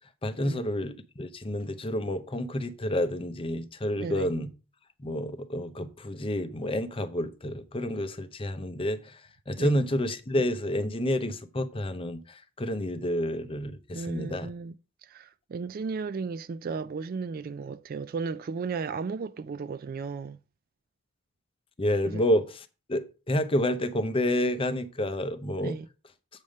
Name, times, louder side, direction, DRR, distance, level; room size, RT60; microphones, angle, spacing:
voice 1, 0.2-4.5 5.0-9.2 9.5-14.5 21.8-22.6 22.9-25.8, left 1 dB, 25° left, 0.6 m, -29 dB
voice 2, 4.0-4.4 9.6-9.8 13.9-14.7 15.0-20.4 22.0-22.2 25.6-25.9, right 5 dB, 40° right, 0.3 m, -35 dB
8.3 x 3.6 x 6.3 m
head